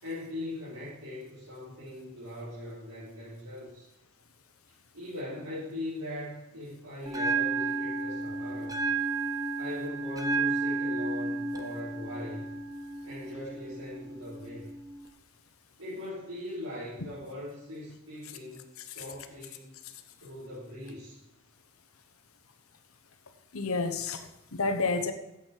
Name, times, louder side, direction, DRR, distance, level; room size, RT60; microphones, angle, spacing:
voice 1, 0.0-3.9 4.9-8.8 9.5-12.5 13.0-14.7 15.8-19.8 20.2-21.2, left 1 dB, 80° right, -10 dB, 4.6 m, -40 dB
Bell, 7.1-15.1, right 3 dB, 15° right, 0.9 m, -32 dB
voice 2, 23.5-25.1, left 3 dB, 80° left, 9 dB, 1.1 m, -30 dB
14.0 x 8.7 x 4.7 m, 0.91 s
head